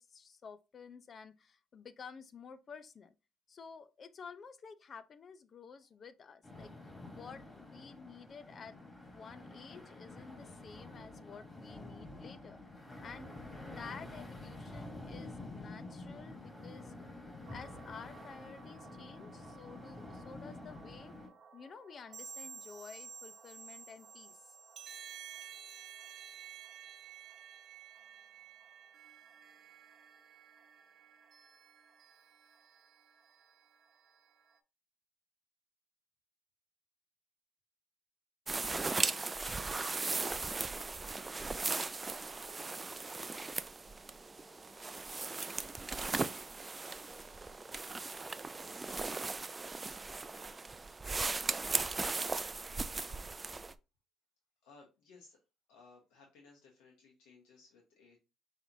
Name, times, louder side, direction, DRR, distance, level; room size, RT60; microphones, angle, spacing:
voice 1, 0.0-3.1 3.5-6.7 7.1-8.8 9.1-12.6 13.0-16.9 17.5-21.1 21.5-24.6 25.8-25.9, left 6 dB, 45° left, 0.6 m, -52 dB
sound 1, 6.4-21.3, left 2 dB, 10° left, 2.7 m, -49 dB
sound 2, 17.5-34.6, right 7 dB, 50° right, 0.9 m, -53 dB
sound 3, 38.5-53.7, right 3 dB, 25° right, 0.4 m, -38 dB
voice 2, 54.6-55.4 55.7-58.2, left 4 dB, 85° left, 1.3 m, -60 dB
5.6 x 3.3 x 2.7 m
supercardioid pair, 75°, 0 cm